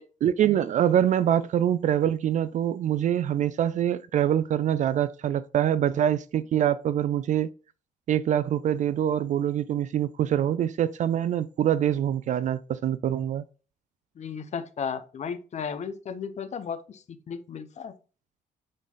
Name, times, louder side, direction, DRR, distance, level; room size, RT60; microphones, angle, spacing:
voice 1, 0.2-7.5 8.1-13.4, right 10 dB, 55° right, 0.4 m, -24 dB
voice 2, 14.2-17.9, left 6 dB, 50° left, 1.0 m, -35 dB
9.3 x 4.0 x 3.9 m
cardioid pair, 105°, 15 cm